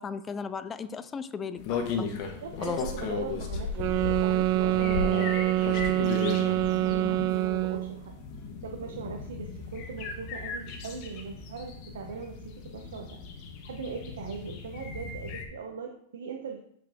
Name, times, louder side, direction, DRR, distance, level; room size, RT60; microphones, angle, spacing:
voice 1, 0.0-1.6 2.0-2.2 2.6-2.8, left 5 dB, 15° left, 12 dB, 0.3 m, -35 dB
sound 1, 1.6-15.5, left 5 dB, 40° left, 1.2 m, -36 dB
voice 2, 2.2-8.2 8.6-13.2 13.6-16.6, right 5 dB, 85° right, 2 dB, 0.9 m, -40 dB
sound 2, 3.8-8.0, right 16 dB, 40° right, 0.5 m, -26 dB
8.5 x 4.6 x 3.6 m, 0.69 s
supercardioid pair, 150°, 0 cm